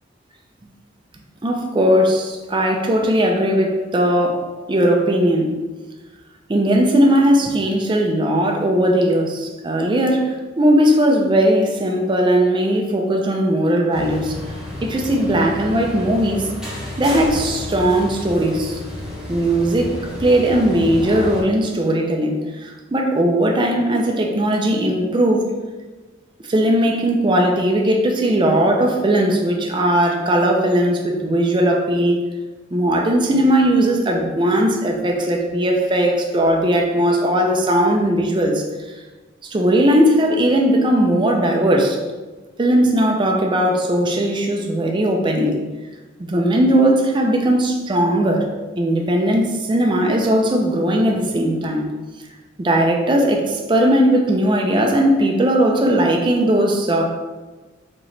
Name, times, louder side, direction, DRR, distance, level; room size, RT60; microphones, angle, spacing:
voice 1, 1.4-5.6 6.5-14.4 14.8-16.5 17.0-18.8 19.3-25.5 26.4-32.2 32.7-38.6 39.4-42.0 42.6-45.6 46.2-48.5 48.8-51.9 52.6-57.0, right 1 dB, 25° right, 1 dB, 0.5 m, -18 dB
sound 1, 13.9-21.4, left 1 dB, 5° right, 1.0 m, -31 dB
5.0 x 2.9 x 3.3 m, 1.2 s
head